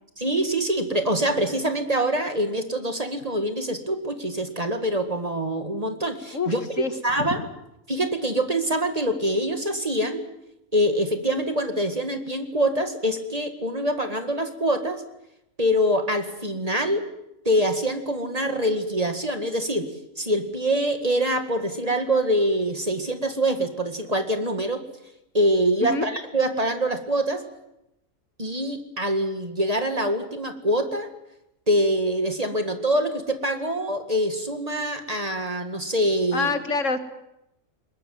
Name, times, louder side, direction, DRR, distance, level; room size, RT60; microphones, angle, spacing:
voice 1, 0.2-6.6 7.0-7.4 7.9-10.2 10.7-15.0 15.6-17.0 17.5-19.9 20.2-24.8 25.3-27.4 28.4-31.1 31.7-36.5, right 1 dB, 30° right, 7 dB, 2.0 m, -24 dB
voice 2, 6.3-6.9 7.2-7.3 25.8-26.1 36.3-37.0, left 3 dB, 65° left, 10 dB, 2.0 m, -26 dB
21.5 x 20.5 x 9.3 m, 0.85 s
omnidirectional pair, 1.4 m